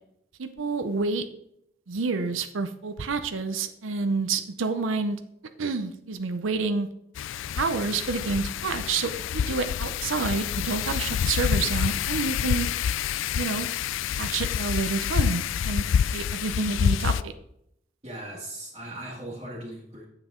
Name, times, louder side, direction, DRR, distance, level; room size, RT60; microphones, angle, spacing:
voice 1, 0.4-1.3 1.9-5.2 5.6-6.9 7.5-12.7 13.3-13.7 14.1-15.9 16.1-17.3, right 4 dB, 80° right, 9 dB, 0.6 m, -28 dB
Wind, 7.2-17.2, left 8 dB, 75° left, 0.3 m, -27 dB
voice 2, 18.0-20.1, right 1 dB, 25° right, -6 dB, 1.7 m, -38 dB
8.9 x 7.6 x 3.8 m, 0.74 s
head